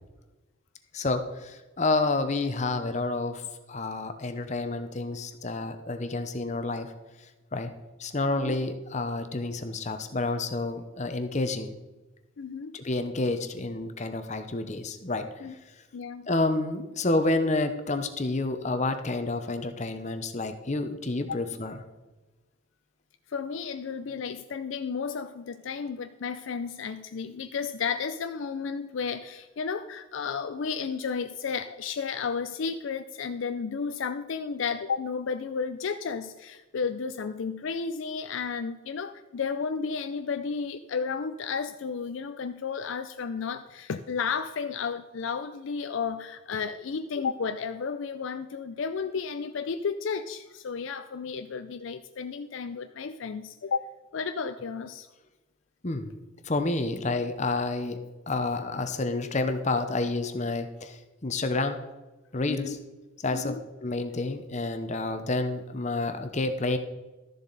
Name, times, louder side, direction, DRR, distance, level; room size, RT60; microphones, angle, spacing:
voice 1, 0.9-3.4 3.7-6.9 7.5-7.7 8.0-11.7 12.7-15.3 16.3-21.8 55.8-56.1 56.4-58.0 58.3-61.8 62.3-62.8 63.2-66.8, left 2 dB, 35° left, 8 dB, 0.7 m, -29 dB
voice 2, 12.4-12.7 15.4-15.5 15.9-16.3 21.3-21.4 23.3-53.9 54.1-55.1 62.5-62.8 63.3-63.6, left 5 dB, 65° left, 8 dB, 0.4 m, -33 dB
12.5 x 7.3 x 4.0 m, 1.1 s
head